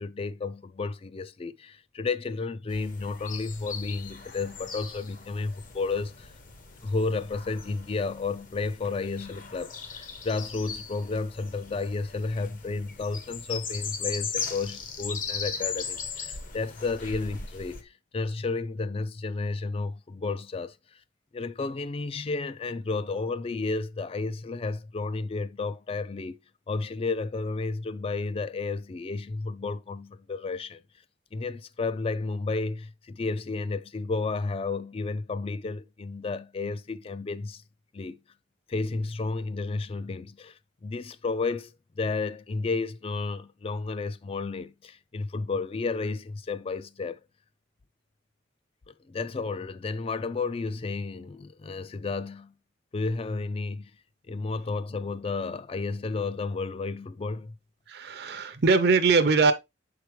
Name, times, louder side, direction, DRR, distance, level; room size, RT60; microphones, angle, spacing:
voice 1, 0.0-6.3 6.8-20.8 21.3-26.4 26.7-30.8 31.3-37.6 37.9-38.2 38.7-47.2 49.1-52.5 52.9-53.9 54.3-57.5, left 3 dB, 30° left, 0.3 m, -32 dB
sound 1, 2.7-17.8, left 5 dB, 45° left, 0.8 m, -39 dB
voice 2, 57.9-59.5, right 4 dB, 60° right, 0.6 m, -22 dB
6.8 x 4.7 x 3.1 m
head